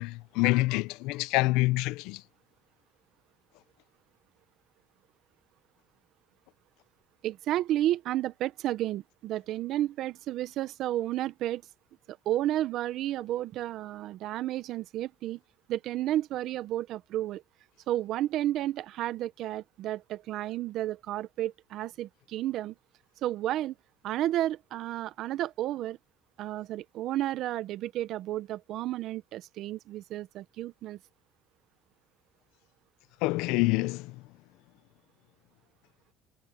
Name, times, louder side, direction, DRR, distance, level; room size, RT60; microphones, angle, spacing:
voice 1, 0.0-2.2 33.2-34.2, left 21 dB, 75° left, 0.5 m, -27 dB
voice 2, 7.2-11.6 12.1-15.4 15.7-17.4 17.9-22.7 23.2-23.7 24.0-26.0 26.4-31.0, right 13 dB, 55° right, 0.6 m, -32 dB
cardioid pair, 140°, 0 cm